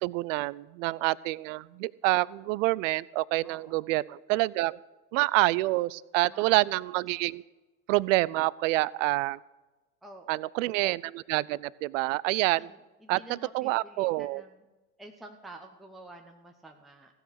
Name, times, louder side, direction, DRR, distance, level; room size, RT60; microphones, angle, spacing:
voice 1, 0.0-4.8 5.1-7.4 7.9-9.4 10.3-12.7 13.1-14.4, right 20 dB, 55° right, 22 dB, 0.5 m, -27 dB
voice 2, 3.4-3.9 6.3-6.6 10.0-10.7 12.4-14.7 15.0-17.2, right 2 dB, ahead, 2 dB, 0.9 m, -50 dB
15.5 x 6.4 x 7.9 m, 1.2 s
hypercardioid pair, 85°, 46 cm